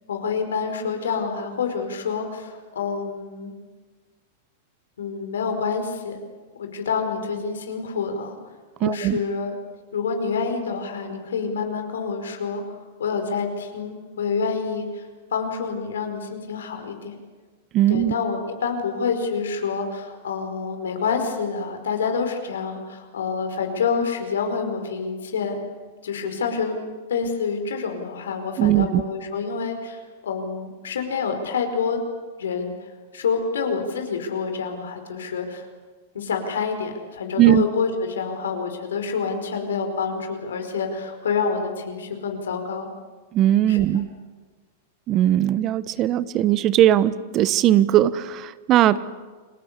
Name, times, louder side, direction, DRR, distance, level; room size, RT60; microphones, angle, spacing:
voice 1, 0.1-3.5 5.0-6.2 6.6-8.4 8.8-9.6 9.9-12.6 13.0-15.1 15.3-17.2 17.9-25.6 26.0-26.8 27.1-32.0 32.4-35.7 36.1-42.9 43.7-43.9, left 5 dB, 85° left, 5 dB, 5.0 m, -27 dB
voice 2, 8.8-9.2 17.7-18.1 28.6-29.0 37.4-37.6 43.3-44.1 45.1-49.0, right 12 dB, 40° right, 16 dB, 1.1 m, -19 dB
30.0 x 22.5 x 8.3 m, 1.4 s
hypercardioid pair, 115°, 0 cm